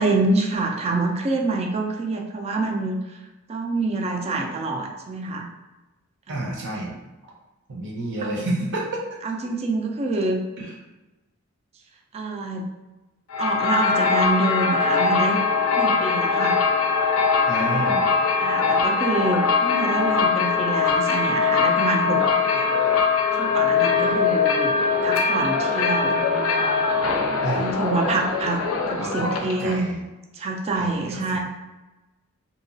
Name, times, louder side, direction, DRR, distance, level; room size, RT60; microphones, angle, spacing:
voice 1, 0.0-3.2 3.5-5.5 6.3-6.7 8.2-8.5 9.2-10.4 12.1-12.7 13.4-15.4 15.8-16.6 18.4-22.7 23.4-24.7 25.0-26.2 27.5-29.9 30.3-31.4, right 3 dB, 30° right, 2 dB, 0.3 m, -26 dB
voice 2, 6.3-6.9 7.7-8.8 10.6-10.7 17.5-18.0 23.9-24.2 27.4-27.8 29.0-30.0 30.7-31.4, right 2 dB, 60° right, -2 dB, 0.7 m, -29 dB
sound 1, 13.3-29.7, left 5 dB, 85° left, 0.4 m, -21 dB
2.8 x 2.3 x 2.6 m, 1.1 s
head